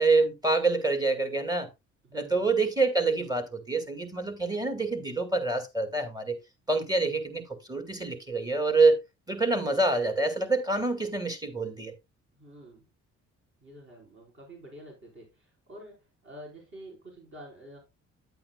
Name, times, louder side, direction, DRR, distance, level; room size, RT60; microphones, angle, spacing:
voice 1, 0.0-1.7 2.1-6.4 6.7-9.0 9.3-11.9, right 3 dB, 15° right, 1.9 m, -26 dB
voice 2, 2.0-2.5 12.3-12.9 13.6-17.8, right 1 dB, 40° right, 4.6 m, -48 dB
9.4 x 8.7 x 2.3 m
cardioid pair, 90°, 30 cm